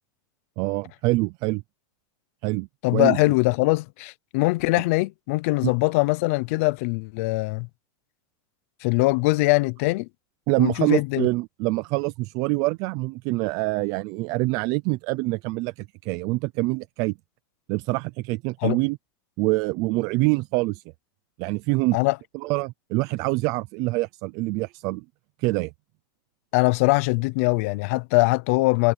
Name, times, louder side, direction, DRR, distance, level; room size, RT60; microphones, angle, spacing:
voice 1, 0.6-1.6 2.4-3.2 5.6-5.7 10.5-17.1 17.7-19.0 19.4-20.8 21.4-22.0 22.3-25.0 25.4-25.7, right 23 dB, 30° right, 0.4 m, -25 dB
voice 2, 2.8-7.7 8.8-10.1 10.6-11.3 18.6-18.8 21.9-22.2 26.5-28.9, left 24 dB, 35° left, 0.5 m, -22 dB
supercardioid pair, 180°, 12 cm